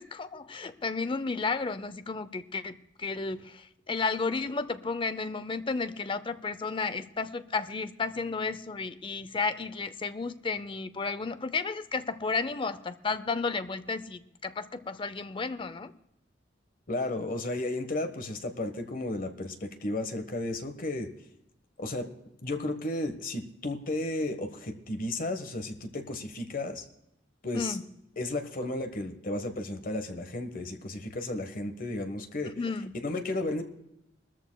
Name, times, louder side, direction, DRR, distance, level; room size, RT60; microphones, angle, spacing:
voice 1, 0.0-15.9 27.5-27.8 32.6-32.9, left 4 dB, 30° left, 13 dB, 0.6 m, -33 dB
voice 2, 16.9-21.1 21.8-22.1 22.4-26.8 27.4-27.8 28.2-32.5 33.0-33.6, left 2 dB, 50° left, 6 dB, 1.3 m, -33 dB
20.0 x 14.0 x 2.3 m, 0.82 s
head